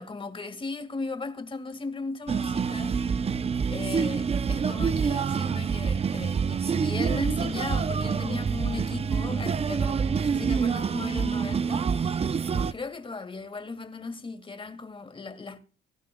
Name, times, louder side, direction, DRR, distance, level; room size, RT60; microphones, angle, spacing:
voice 1, 0.0-3.0 3.2-3.4 3.7-15.6, left 3 dB, 25° left, 1.9 m, -37 dB
sound 1, 2.3-12.7, right 6 dB, 30° right, 0.5 m, -27 dB
17.5 x 12.0 x 2.3 m
cardioid pair, 90°, 20 cm